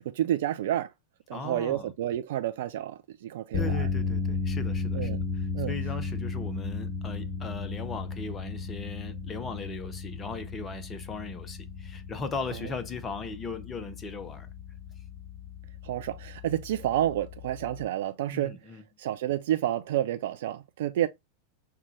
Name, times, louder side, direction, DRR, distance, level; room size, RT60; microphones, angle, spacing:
voice 1, 0.0-0.9 1.3-3.9 4.9-5.3 5.5-5.7 12.6-12.7 15.8-18.6 19.0-21.1, right 12 dB, 55° right, 0.4 m, -30 dB
voice 2, 1.3-1.9 3.5-14.5 18.3-18.8, left 3 dB, 20° left, 0.7 m, -38 dB
sound 1, 3.5-17.8, left 4 dB, 40° left, 1.3 m, -34 dB
5.7 x 2.3 x 3.0 m
figure-of-eight pair, 90°, 0 cm